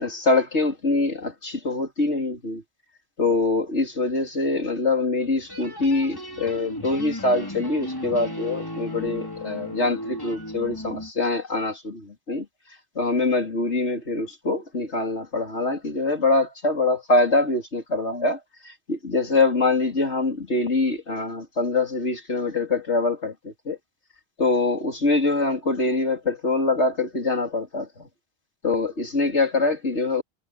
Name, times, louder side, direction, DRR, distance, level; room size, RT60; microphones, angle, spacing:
voice 1, 0.0-2.6 3.2-12.5 13.0-18.4 18.6-23.8 24.4-28.1 28.6-30.2, left 3 dB, 90° left, 4.3 m, -24 dB
sound 1, 5.5-11.1, left 1 dB, 20° left, 5.6 m, -35 dB
omnidirectional pair, 1.1 m